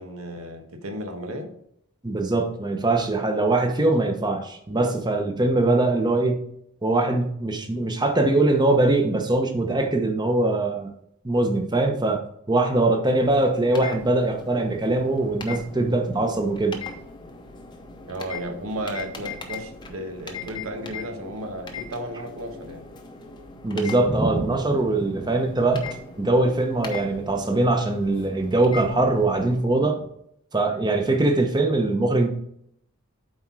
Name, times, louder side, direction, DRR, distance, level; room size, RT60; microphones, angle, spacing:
voice 1, 0.0-1.5 18.1-22.8, right 1 dB, 80° right, 5 dB, 1.3 m, -34 dB
voice 2, 2.0-6.4 6.8-10.9 11.2-16.8 23.6-25.9 26.2-30.0 30.5-32.3, right 2 dB, 20° right, 5 dB, 0.9 m, -22 dB
sound 1, 13.2-29.6, left 4 dB, 20° left, 0.7 m, -40 dB
7.8 x 4.4 x 4.7 m, 0.72 s
head